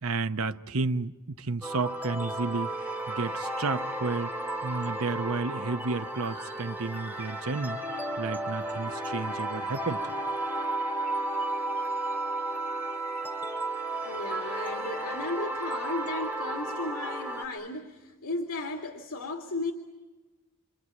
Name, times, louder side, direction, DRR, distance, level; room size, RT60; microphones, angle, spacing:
voice 1, 0.0-2.7 3.1-4.3 4.6-7.8 8.2-10.0, right 3 dB, 70° right, 0.9 m, -31 dB
sound 1, 1.6-17.5, right 2 dB, 10° right, 3.3 m, -33 dB
voice 2, 14.0-19.7, left 2 dB, 80° left, 2.5 m, -35 dB
27.5 x 25.0 x 8.4 m
head